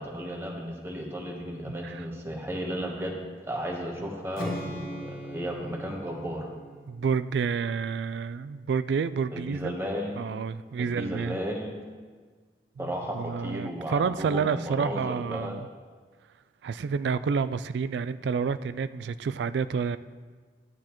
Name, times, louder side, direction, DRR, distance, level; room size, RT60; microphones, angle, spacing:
voice 1, 0.0-6.5 9.3-10.2 10.8-11.8 12.8-15.6, equal, 15° right, 0 dB, 1.1 m, -34 dB
Strum, 4.3-8.5, equal, 50° left, 1.7 m, -40 dB
voice 2, 6.9-9.7 10.2-11.4 12.8-15.7 16.6-20.0, right 6 dB, 80° right, 14 dB, 0.3 m, -29 dB
11.0 x 9.5 x 3.0 m, 1.5 s
head